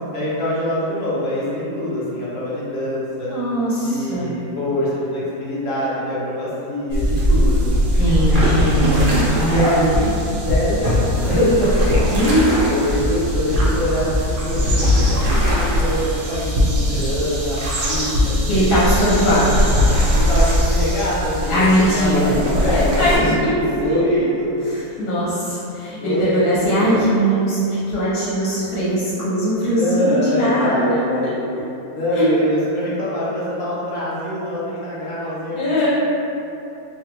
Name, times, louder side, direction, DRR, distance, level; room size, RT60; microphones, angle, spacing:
voice 1, 0.1-3.3 3.8-7.8 9.5-14.6 14.9-18.7 20.1-24.5 26.0-27.0 29.8-31.3 31.9-35.6, left 1 dB, 60° left, -9 dB, 1.1 m, -24 dB
voice 2, 3.3-4.3 8.0-9.0 9.4-9.6 12.1-12.5 18.5-19.6 21.5-22.4 22.7-24.3 24.6-31.0 32.1-32.3 35.6-35.9, equal, 90° left, -9 dB, 1.3 m, -20 dB
sound 1, 6.9-23.2, equal, 75° right, 0.4 m, -20 dB
3.3 x 2.2 x 2.9 m, 2.8 s
omnidirectional pair, 1.7 m